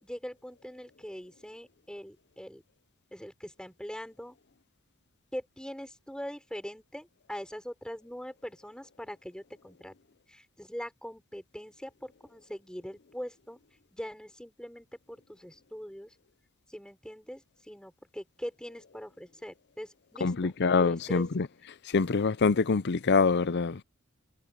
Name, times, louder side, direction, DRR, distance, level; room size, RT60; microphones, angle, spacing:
voice 1, 0.0-2.6 3.1-4.4 5.3-9.9 10.3-13.6 13.9-16.2 16.7-20.5 20.8-21.3, equal, 5° left, 4.9 m, -42 dB
voice 2, 20.2-21.5 21.9-23.8, left 4 dB, 50° left, 0.6 m, -25 dB
head